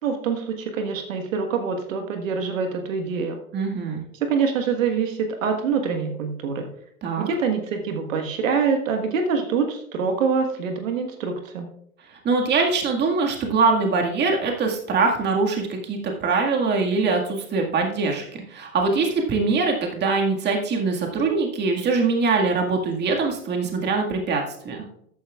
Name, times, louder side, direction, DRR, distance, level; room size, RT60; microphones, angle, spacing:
voice 1, 0.0-3.4 4.2-6.7 7.2-11.7, right 5 dB, 70° right, 5 dB, 1.5 m, -25 dB
voice 2, 3.5-4.0 7.0-7.3 12.2-24.8, right 4 dB, 25° right, 2 dB, 1.9 m, -23 dB
13.5 x 9.4 x 2.4 m, 0.73 s
hypercardioid pair, 110°, 41 cm